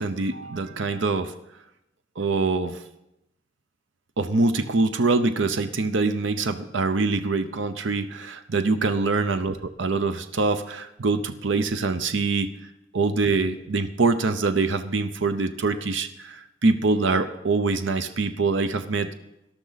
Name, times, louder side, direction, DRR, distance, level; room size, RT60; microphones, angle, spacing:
voice 1, 0.0-1.3 2.2-2.8 4.2-12.5 12.9-19.1, right 3 dB, 85° right, 10 dB, 0.7 m, -24 dB
18.5 x 12.0 x 4.0 m, 0.86 s
head